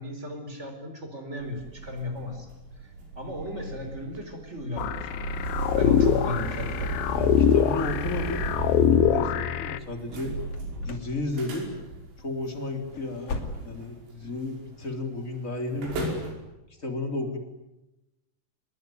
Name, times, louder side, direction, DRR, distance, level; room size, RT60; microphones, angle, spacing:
voice 1, 0.0-2.5 2.8-5.5 5.8-7.1, left 1 dB, 15° right, 6 dB, 4.1 m, -35 dB
sound 1, 1.4-14.5 14.8-15.1 15.6-16.3, right 3 dB, 85° right, 8.0 m, -36 dB
sound 2, 4.8-9.8, left 9 dB, 75° left, 2.2 m, -24 dB
voice 2, 6.8-8.4 8.8-10.4 10.8-11.7 12.2-13.4 13.6-16.2 16.8-17.4, left 2 dB, 20° left, 4 dB, 3.0 m, -33 dB
sound 3, 10.4-11.2 11.4-11.9 12.2-12.3 12.8-14.0 14.3-14.4 14.9-15.1, left 3 dB, 40° left, 2.5 m, -37 dB
26.0 x 21.5 x 9.5 m, 0.97 s
omnidirectional pair, 5.8 m